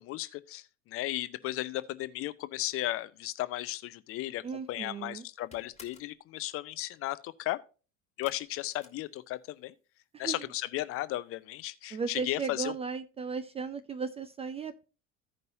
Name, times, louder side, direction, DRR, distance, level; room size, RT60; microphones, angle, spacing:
voice 1, 0.0-4.4 4.7-7.6 8.2-9.7 10.2-12.7, left 16 dB, 35° left, 0.6 m, -35 dB
voice 2, 4.4-5.3 10.1-10.5 11.9-14.8, right 5 dB, 15° right, 0.4 m, -36 dB
sound 1, 4.5-4.9 5.1-6.2 8.2-9.7 10.0-10.6 10.9-11.0 11.4-11.5, left 4 dB, 15° left, 1.6 m, -56 dB
15.5 x 5.3 x 2.6 m
figure-of-eight pair, 65°, 40 cm